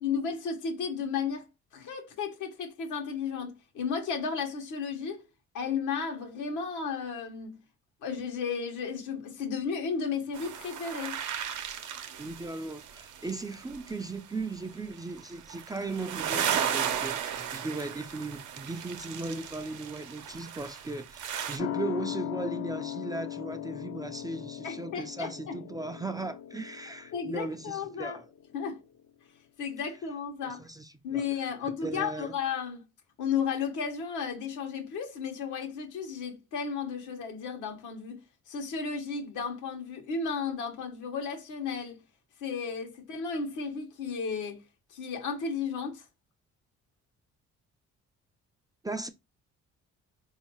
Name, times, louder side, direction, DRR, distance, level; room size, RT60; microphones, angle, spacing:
voice 1, 0.0-1.5 1.7-5.2 5.5-7.5 8.0-11.2 24.6-25.6 27.1-28.2 28.5-28.8 29.6-30.6 31.0-32.8 33.2-38.2 38.5-42.0 42.4-44.6 44.9-46.1, left 6 dB, 85° left, 1.1 m, -33 dB
sound 1, 10.3-14.1 14.8-21.6, right 9 dB, 75° right, 0.7 m, -35 dB
voice 2, 12.2-28.2 30.4-31.3 31.6-32.3 48.8-49.1, right 3 dB, 15° right, 0.3 m, -37 dB
sound 2, 21.6-28.6 28.9-29.0, left 13 dB, 50° left, 0.5 m, -39 dB
4.4 x 2.7 x 2.8 m
cardioid pair, 90°, 30 cm